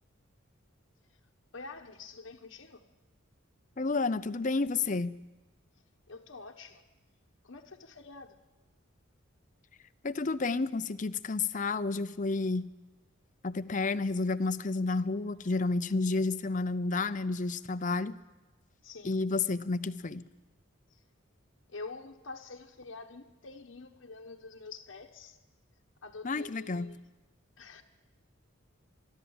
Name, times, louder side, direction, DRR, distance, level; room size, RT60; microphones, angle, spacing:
voice 1, 1.5-2.8 6.1-6.8 7.4-8.3 18.8-19.1 20.9-21.0 21.7-25.4 26.0-27.0 27.6-27.8, left 3 dB, 70° left, 2 dB, 1.1 m, -46 dB
voice 2, 3.8-5.1 10.0-12.7 13.4-18.1 19.0-20.3 26.2-26.9, left 3 dB, 40° left, 14 dB, 0.6 m, -30 dB
24.5 x 12.0 x 8.8 m, 1.2 s
head